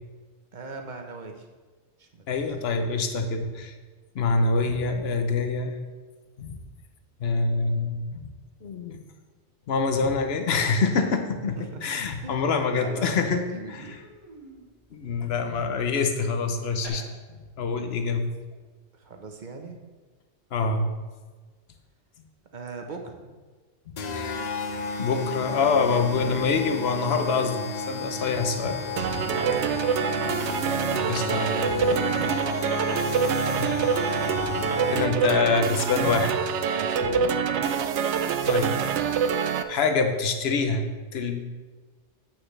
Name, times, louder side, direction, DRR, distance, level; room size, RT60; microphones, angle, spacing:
voice 1, 0.5-1.5 2.0-2.6 11.5-14.0 18.9-19.8 22.5-23.3 29.3-29.8 30.9-32.5 36.7-37.5, right 3 dB, 45° right, 3 dB, 1.0 m, -40 dB
voice 2, 2.3-3.7 4.1-5.7 6.4-6.6 7.2-8.2 8.6-9.0 9.7-13.4 13.7-13.8 14.9-17.0 17.6-18.3 20.5-20.9 24.2-24.4 25.0-28.8 31.1-31.5 33.6-33.7 34.9-36.3 38.1-38.9 39.7-40.8 41.1-41.4, left 4 dB, 65° left, 6 dB, 1.0 m, -25 dB
Human voice, 11.8-12.0 12.4-16.9, right 2 dB, 25° right, 1.9 m, -50 dB
sound 1, 24.0-35.4, left 4 dB, 50° left, 0.6 m, -32 dB
sound 2, 29.0-39.6, right 6 dB, 85° right, 0.9 m, -25 dB
8.8 x 8.4 x 3.2 m, 1.4 s
omnidirectional pair, 1.1 m